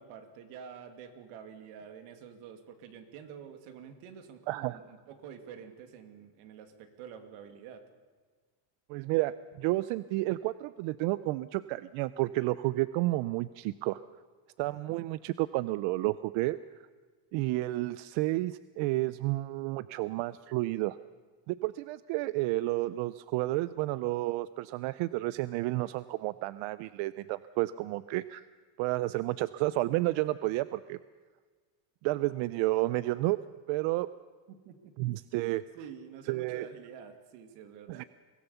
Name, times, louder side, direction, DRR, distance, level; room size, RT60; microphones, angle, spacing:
voice 1, 0.0-7.8 34.5-35.5 35.7-38.0, right 7 dB, 80° right, 7 dB, 2.5 m, -48 dB
voice 2, 4.5-4.8 8.9-14.0 14.6-16.6 17.3-21.0 21.5-28.4 28.8-31.0 32.0-33.4 33.7-34.1 35.0-35.6 36.3-36.7 37.9-38.0, right 18 dB, 65° right, 16 dB, 0.6 m, -31 dB
23.5 x 17.0 x 6.9 m, 1.5 s
cardioid pair, 150°, 50 cm